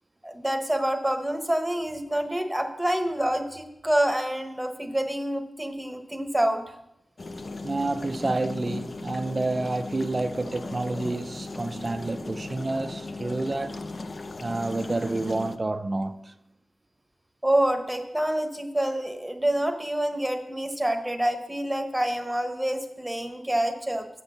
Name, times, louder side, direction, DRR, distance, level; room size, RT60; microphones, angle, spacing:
voice 1, 0.2-6.7 17.4-24.1, right 1 dB, 5° right, 0.9 m, -27 dB
sound 1, 7.2-15.6, left 3 dB, 45° left, 0.5 m, -37 dB
voice 2, 7.6-13.8 14.4-16.3, right 2 dB, 30° right, 0.4 m, -29 dB
7.9 x 6.0 x 6.7 m
wide cardioid pair, 130°, 0 cm